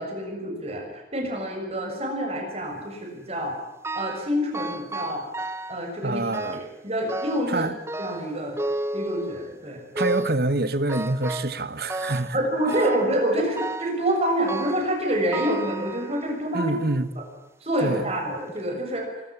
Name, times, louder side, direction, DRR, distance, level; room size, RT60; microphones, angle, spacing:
voice 1, 0.0-3.5 3.9-5.2 5.7-6.2 6.5-7.6 8.0-8.6 8.9-9.8 12.3-16.7 17.2-17.3 17.6-19.1, right 1 dB, 35° right, 6.4 m, -27 dB
sound 1, 3.8-4.3 4.5-5.8 6.3-6.8 7.1-7.6 7.9-9.5 10.0-10.4 10.9-11.6 11.9-12.3 12.7-13.1 13.6-14.0 14.5-14.9 15.3-16.4 17.0-17.1 17.9-18.0 18.5-18.6, right 2 dB, 15° right, 0.9 m, -32 dB
voice 2, 6.0-6.6 7.5-7.7 9.9-12.4 16.5-17.1 17.8-18.1, right 2 dB, 60° right, 1.3 m, -26 dB
24.5 x 14.5 x 9.9 m
head